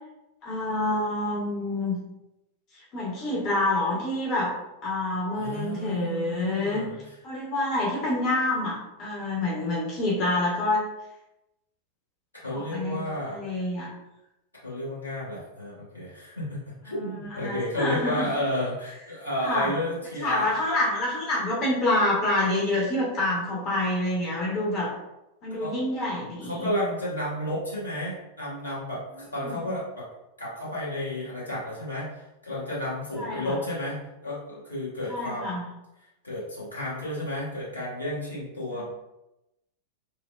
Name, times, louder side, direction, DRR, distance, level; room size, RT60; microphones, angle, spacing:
voice 1, 0.4-2.0 2.9-4.5 4.8-6.9 7.2-10.8 12.5-13.0 13.3-13.9 16.9-18.3 19.4-19.7 20.2-24.9 25.4-26.7 29.4-29.7 33.1-33.6 35.1-35.6 38.7-38.8, left 1 dB, 35° left, -5 dB, 0.8 m, -27 dB
voice 2, 5.3-7.1 12.4-13.4 14.6-20.6 25.5-25.7 26.5-30.1 30.4-35.5 36.2-38.8, left 1 dB, 80° left, -8 dB, 1.0 m, -32 dB
3.2 x 2.1 x 2.3 m, 0.93 s
figure-of-eight pair, 90°, 0 cm